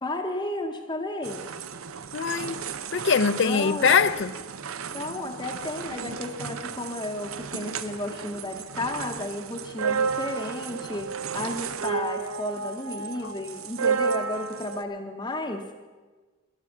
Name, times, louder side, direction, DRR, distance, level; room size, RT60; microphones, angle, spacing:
voice 1, 0.0-1.5 3.4-4.0 4.9-15.6, left 1 dB, 20° left, 0.8 m, -33 dB
sound 1, 1.2-14.8, right 6 dB, 80° right, 0.7 m, -32 dB
voice 2, 2.1-2.6 2.9-4.3 13.0-13.3, left 6 dB, 55° left, 0.5 m, -23 dB
13.0 x 11.0 x 7.2 m
head